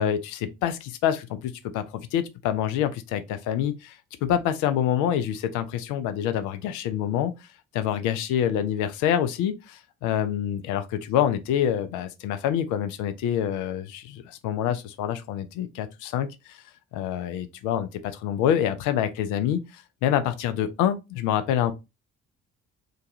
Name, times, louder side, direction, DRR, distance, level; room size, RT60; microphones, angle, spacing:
voice 1, 0.0-7.4 7.7-16.6 16.9-21.7, left 10 dB, 55° left, 0.5 m, -26 dB
2.2 x 2.2 x 2.7 m
figure-of-eight pair, 45°, 37 cm